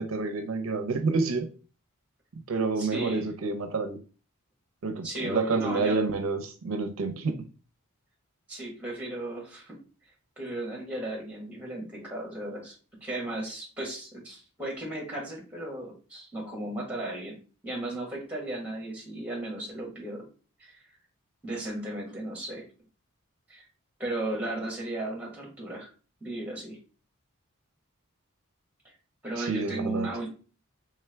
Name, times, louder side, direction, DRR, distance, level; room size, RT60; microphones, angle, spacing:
voice 1, 0.0-1.5 2.5-4.0 4.8-7.4 29.4-30.1, right 3 dB, 70° right, 7 dB, 0.5 m, -28 dB
voice 2, 2.8-3.3 5.0-6.0 8.5-9.8 10.4-12.7 13.0-17.4 17.6-20.2 20.6-20.8 21.4-22.6 23.5-23.7 24.0-25.9 26.2-26.8 29.2-30.3, right 1 dB, 5° right, -1 dB, 1.2 m, -35 dB
3.4 x 3.4 x 3.3 m, 0.37 s
head